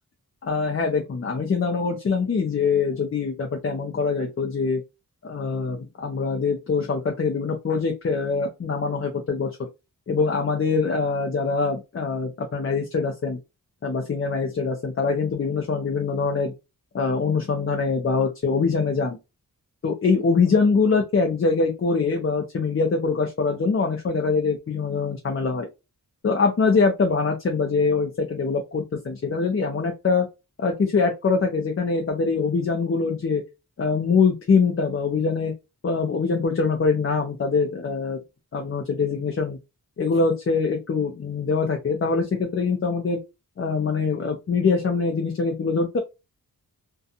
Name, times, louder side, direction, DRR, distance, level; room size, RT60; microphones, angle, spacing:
voice 1, 0.4-4.8 5.2-9.6 10.1-13.4 13.8-16.5 16.9-19.2 19.8-25.7 26.2-30.3 30.6-33.4 33.8-35.5 35.8-38.2 38.5-39.6 40.0-43.2 43.6-46.0, left 4 dB, 35° left, 2 dB, 0.5 m, -23 dB
2.7 x 2.3 x 2.4 m, 0.25 s
wide cardioid pair, 135°, 37 cm